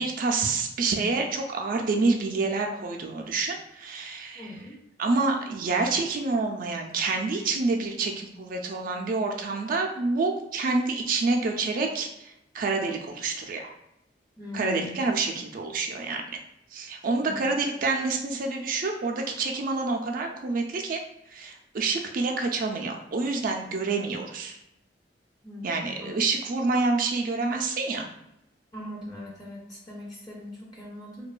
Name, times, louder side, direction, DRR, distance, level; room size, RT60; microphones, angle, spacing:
voice 1, 0.0-4.5 5.0-13.7 14.5-16.4 16.7-21.0 21.3-24.6 25.6-28.1, right 3 dB, 50° right, 3 dB, 0.3 m, -27 dB
voice 2, 4.3-4.8 14.4-15.0 17.2-17.5 25.4-26.1 28.7-31.3, left 1 dB, 25° left, -4 dB, 0.4 m, -40 dB
2.7 x 2.2 x 2.3 m, 0.83 s
head